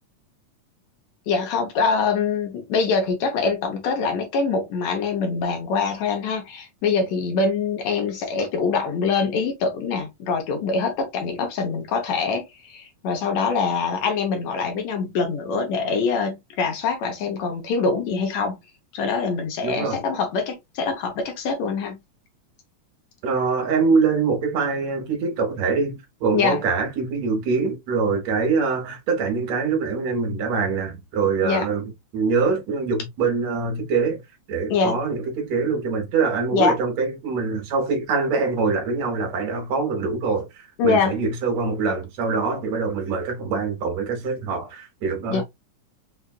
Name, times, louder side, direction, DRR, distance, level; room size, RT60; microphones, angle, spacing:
voice 1, 1.3-18.6 18.9-22.0 26.3-26.6 31.4-31.7 34.7-35.0 36.5-36.8 40.8-41.2 45.3-45.4, left 5 dB, 70° left, 2.0 m, -24 dB
voice 2, 19.6-20.0 23.2-34.2 34.5-45.4, right 4 dB, 65° right, 2.3 m, -24 dB
5.5 x 2.4 x 2.3 m
omnidirectional pair, 3.5 m